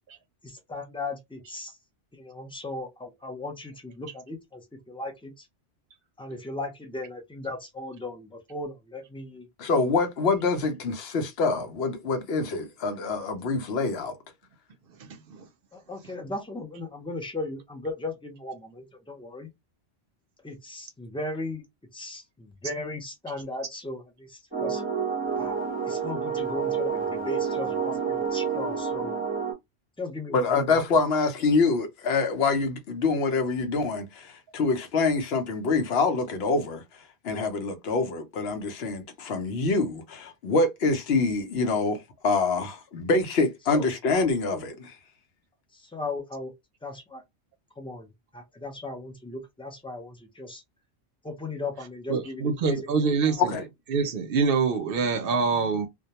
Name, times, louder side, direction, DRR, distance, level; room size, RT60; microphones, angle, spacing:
voice 1, 0.4-1.8 2.1-5.5 6.2-9.5 15.7-19.5 20.4-21.6 21.9-24.8 25.3-25.6 25.8-29.2 30.0-30.8 43.7-43.9 45.7-46.5 46.8-47.2 47.8-50.6 51.2-53.3, left 2 dB, 10° left, 0.4 m, -37 dB
voice 2, 9.6-14.2 30.3-36.8 37.2-44.9 53.4-53.6, left 3 dB, 70° left, 0.8 m, -25 dB
voice 3, 15.0-15.4 52.1-53.5 53.9-55.9, right 5 dB, 65° right, 0.7 m, -25 dB
sound 1, 24.5-29.5, right 6 dB, 10° right, 0.7 m, -29 dB
2.2 x 2.2 x 2.8 m
omnidirectional pair, 1.1 m